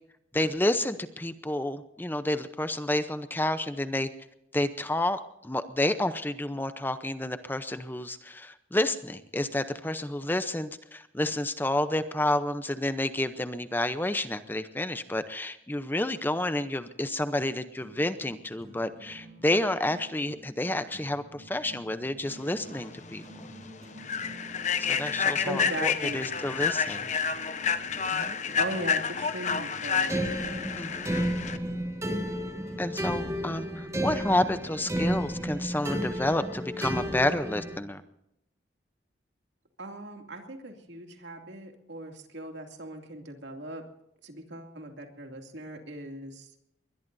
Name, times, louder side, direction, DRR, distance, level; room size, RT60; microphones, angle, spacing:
voice 1, 0.3-4.1 4.5-23.5 24.9-27.1 28.1-28.4 30.8-31.2 32.8-38.0, left 1 dB, 10° left, 11 dB, 0.7 m, -30 dB
sound 1, 17.8-34.7, right 1 dB, 35° right, 6.2 m, -49 dB
Human voice / Train, 22.7-22.8 23.3-23.5 24.0-31.6, left 6 dB, 40° left, 0.9 m, -29 dB
voice 2, 25.4-26.3 28.6-30.2 39.8-43.8 44.2-46.6, right 1 dB, 70° right, 4 dB, 2.5 m, -38 dB
sound 2, 30.1-37.8, equal, 15° right, 1.8 m, -32 dB
22.0 x 21.0 x 2.7 m, 0.81 s
head